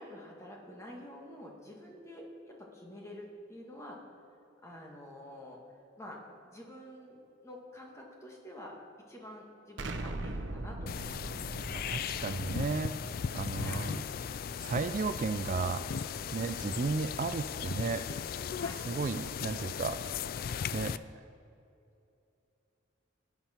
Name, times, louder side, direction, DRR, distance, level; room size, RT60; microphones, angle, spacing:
voice 1, 0.0-4.0 4.6-5.6 6.0-7.2 7.4-8.8 9.1-11.2 13.6-13.9 16.4-16.6 18.6-18.8, left 1 dB, 15° left, -1 dB, 1.7 m, -48 dB
Explosion, 9.8-14.6, right 2 dB, 70° right, 0.8 m, -41 dB
sound 1, 10.9-21.0, left 7 dB, 50° left, 0.3 m, -37 dB
voice 2, 11.7-13.0 13.3-14.0 14.6-15.8 16.3-18.0 18.8-20.0 20.7-20.9, right 4 dB, 40° right, 10 dB, 0.3 m, -34 dB
18.0 x 9.0 x 4.4 m, 2.7 s
head